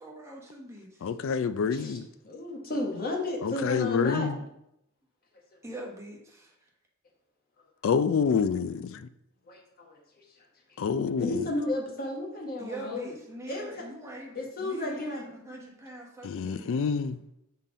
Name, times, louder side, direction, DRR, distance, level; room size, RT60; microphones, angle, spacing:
voice 1, 0.0-1.1 5.6-6.5 12.6-17.0, right 1 dB, 15° right, 1.3 m, -43 dB
voice 2, 1.0-2.1 3.4-4.4 7.8-9.1 10.8-11.5 16.2-17.2, left 6 dB, 65° left, 0.3 m, -27 dB
voice 3, 1.7-2.0 2.2-4.3 9.5-10.0 11.2-13.1 13.5-13.7 14.3-15.3, left 1 dB, 45° left, 1.3 m, -33 dB
5.6 x 3.8 x 4.9 m
head